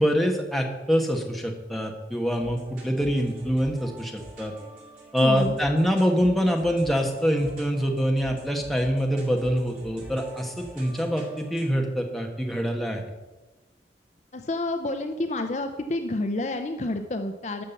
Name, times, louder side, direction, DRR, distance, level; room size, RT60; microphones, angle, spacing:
voice 1, 0.0-4.5 5.1-13.0, equal, ahead, 1 dB, 1.3 m, -25 dB
sound 1, 2.4-11.7, right 1 dB, 50° right, 4.2 m, -45 dB
voice 2, 5.2-5.5 14.3-17.6, left 2 dB, 40° left, 6 dB, 0.6 m, -29 dB
13.0 x 6.0 x 7.0 m, 1.2 s
head